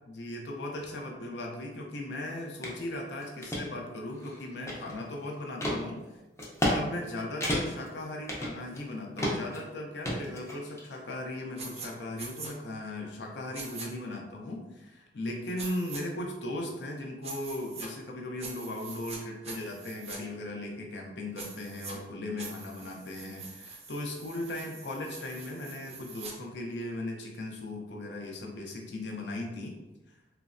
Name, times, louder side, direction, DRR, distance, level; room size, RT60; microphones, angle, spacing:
voice 1, 0.1-6.0 6.7-29.7, left 1 dB, 70° left, 1 dB, 0.5 m, -37 dB
sound 1, 2.6-2.8 3.2-3.6 4.2-5.1 5.6-5.8 6.4-6.8 7.0-7.1 7.4-7.9 8.3-8.9 9.2-9.6 10.0-10.8, equal, 15° left, 0.5 m, -31 dB
sound 2, 11.6-11.9 12.2-12.5 13.5-13.9 15.6-16.0 17.2-17.9 18.4-19.2 19.4-20.2 21.4-21.9 22.4-26.3, right 4 dB, 35° right, 0.4 m, -44 dB
3.1 x 2.0 x 2.5 m, 1.0 s
head